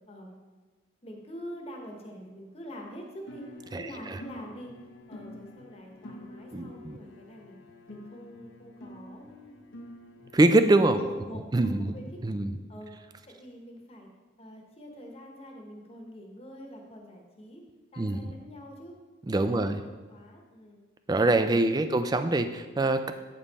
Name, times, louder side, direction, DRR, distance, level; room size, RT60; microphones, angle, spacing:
voice 1, 0.1-0.4 1.0-3.4 3.8-7.6 7.9-9.6 10.8-12.2 12.7-12.9 13.3-14.1 14.4-17.6 17.9-18.9 19.4-20.8, equal, 30° left, 1 dB, 1.1 m, -45 dB
sound 1, 3.3-10.7, left 1 dB, 75° left, 0.8 m, -48 dB
voice 2, 3.7-4.2 6.5-7.0 10.3-11.0 11.5-11.9 12.2-12.5 18.0-18.2 19.3-19.8 21.1-23.1, right 2 dB, 20° right, 9 dB, 0.3 m, -24 dB
8.7 x 5.3 x 4.1 m, 1.3 s
head